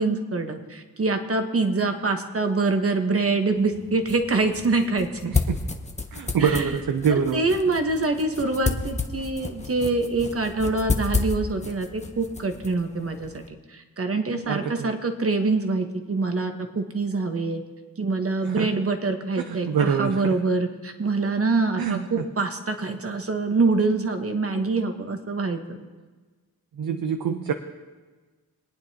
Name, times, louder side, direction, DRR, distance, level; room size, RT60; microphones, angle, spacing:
voice 1, 0.0-5.3 6.4-6.7 7.1-13.4 13.7-17.6 18.0-25.6, right 3 dB, 40° right, 6 dB, 1.2 m, -25 dB
sound 1, 3.6-13.5, left 3 dB, 20° left, 0.9 m, -31 dB
voice 2, 5.3-5.6 6.1-7.4 14.5-14.9 18.5-18.7 19.4-20.4 21.8-22.2 26.8-27.5, right 6 dB, 70° right, 7 dB, 0.7 m, -25 dB
24.0 x 9.0 x 2.9 m, 1.4 s
cardioid pair, 75°, 36 cm